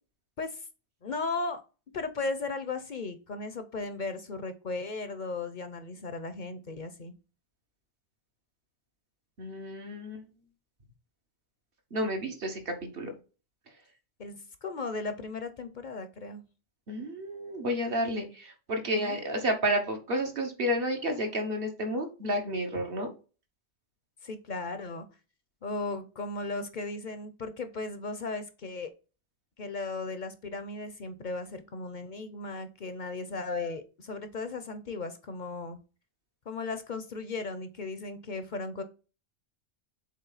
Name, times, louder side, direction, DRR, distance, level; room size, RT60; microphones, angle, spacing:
voice 1, 1.0-1.6 1.9-7.1 14.2-16.4 18.9-19.2 24.2-25.0 25.6-28.9 29.6-35.8 36.5-38.8, left 3 dB, 50° left, 10 dB, 0.7 m, -36 dB
voice 2, 9.4-10.2 11.9-13.2 16.9-23.1, equal, 55° right, 4 dB, 1.4 m, -31 dB
7.4 x 3.3 x 4.0 m, 0.34 s
omnidirectional pair, 1.2 m